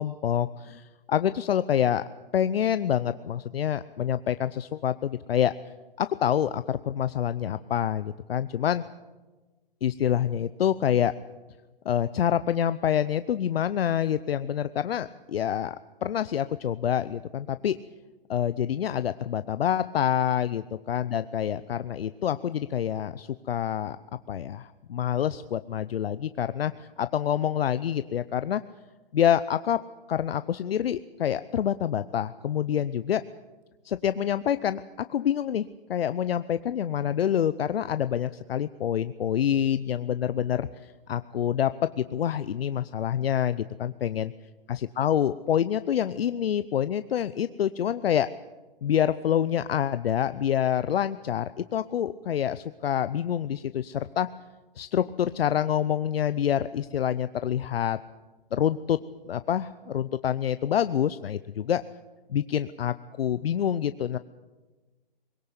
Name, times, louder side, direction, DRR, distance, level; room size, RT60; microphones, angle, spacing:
voice 1, 0.0-2.0 2.3-5.5 6.0-8.8 9.8-11.1 11.8-15.8 16.0-17.8 18.3-24.0 24.3-28.6 29.1-29.8 30.1-33.2 33.8-44.3 44.7-48.3 48.8-54.3 54.8-58.0 58.5-61.8 62.3-64.2, left 9 dB, 75° left, 13 dB, 0.8 m, -27 dB
21.5 x 18.0 x 8.2 m, 1.2 s
hypercardioid pair, 145°, 30 cm